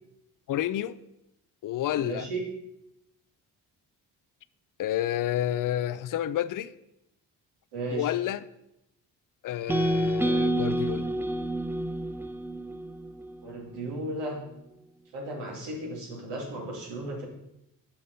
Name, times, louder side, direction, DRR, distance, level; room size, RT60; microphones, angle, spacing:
voice 1, 0.5-1.0 1.6-2.3 4.8-6.7 7.9-8.5 9.4-11.1, left 12 dB, 50° left, 0.5 m, -30 dB
voice 2, 1.9-2.4 7.7-8.1 13.4-14.4 15.1-17.3, right 2 dB, 85° right, 2.2 m, -35 dB
sound 1, 9.7-13.8, right 1 dB, 5° right, 0.4 m, -29 dB
7.0 x 5.3 x 5.1 m
supercardioid pair, 70°, 41 cm